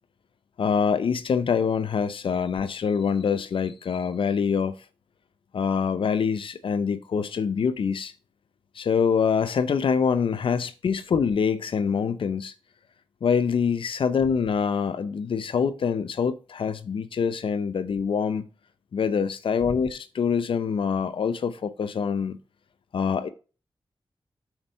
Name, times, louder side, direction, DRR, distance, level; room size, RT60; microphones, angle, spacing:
voice 1, 0.6-4.7 5.5-8.1 8.8-12.5 13.2-18.5 18.9-22.4 22.9-23.3, left 6 dB, 75° left, 0.6 m, -25 dB
5.9 x 4.4 x 5.2 m
cardioid pair, 65°, 9 cm